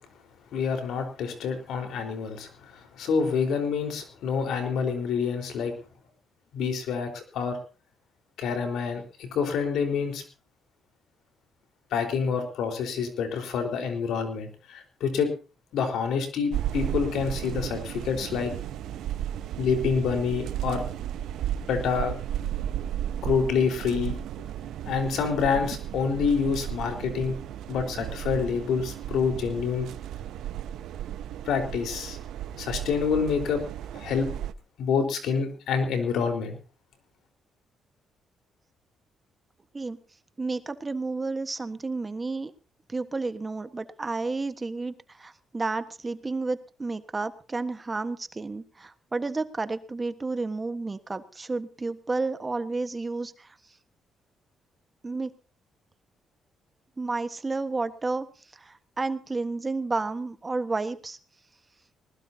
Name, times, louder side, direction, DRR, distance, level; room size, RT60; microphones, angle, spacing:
voice 1, 0.5-5.7 6.5-7.6 8.4-10.2 11.9-15.3 15.7-18.5 19.6-20.8 21.7-22.1 23.2-24.2 24.9-27.4 27.7-29.9 31.4-32.2 32.6-33.6 33.9-34.3 34.8-36.6, left 6 dB, 80° left, 6 dB, 4.4 m, -27 dB
sound 1, 16.5-34.5, right 11 dB, 80° right, 0.8 m, -34 dB
voice 2, 40.4-42.5 42.9-53.6 55.0-55.3 57.0-58.3 58.5-61.2, right 3 dB, 25° right, 11 dB, 1.4 m, -31 dB
20.0 x 20.0 x 2.8 m, 0.34 s
cardioid pair, 90°, 0 cm